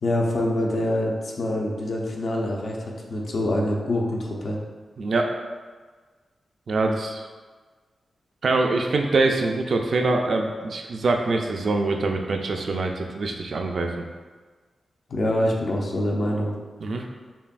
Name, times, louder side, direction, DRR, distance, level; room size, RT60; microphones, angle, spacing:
voice 1, 0.0-4.6 15.1-16.5, left 1 dB, 60° left, -2 dB, 0.6 m, -25 dB
voice 2, 5.0-5.3 6.7-7.2 8.4-13.9 16.8-17.0, right 3 dB, 60° right, 3 dB, 0.4 m, -24 dB
5.4 x 2.3 x 2.5 m, 1.4 s
wide cardioid pair, 105°, 0 cm